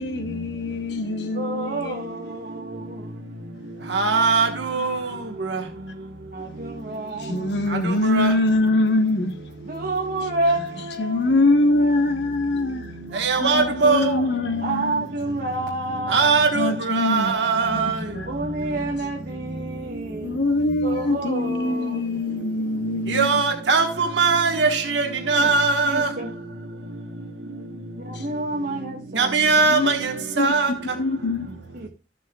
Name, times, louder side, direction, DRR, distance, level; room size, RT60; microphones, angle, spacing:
voice 1, 0.0-2.2 7.1-9.4 11.0-12.9 13.4-15.1 16.5-18.6 20.2-23.4 28.1-28.3 29.7-31.5, left 2 dB, 70° left, 0.9 m, -24 dB
voice 2, 1.3-3.1 6.3-7.7 9.6-11.3 13.1-13.6 14.6-16.4 18.2-20.4 20.8-22.0 25.3-25.5 25.8-26.3 28.0-29.7 31.7-31.9, right 2 dB, 55° right, 1.3 m, -29 dB
voice 3, 3.9-5.1 5.5-5.6 8.0-8.3 13.1-14.2 16.1-17.9 23.1-26.1 29.2-30.7, right 4 dB, 80° right, 1.3 m, -20 dB
13.5 x 7.4 x 2.3 m
head